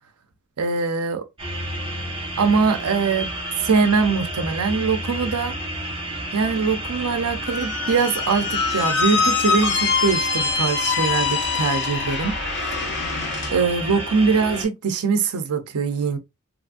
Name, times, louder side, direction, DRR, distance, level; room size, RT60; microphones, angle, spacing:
voice 1, 0.6-1.2 2.4-3.3 3.6-5.6 6.3-12.4 13.5-16.2, right 5 dB, 85° right, 0.6 m, -22 dB
sound 1, 1.4-14.6, right 1 dB, 25° right, 0.9 m, -31 dB
Squeak, 7.4-13.5, left 6 dB, 50° left, 0.6 m, -24 dB
3.1 x 2.5 x 2.3 m
head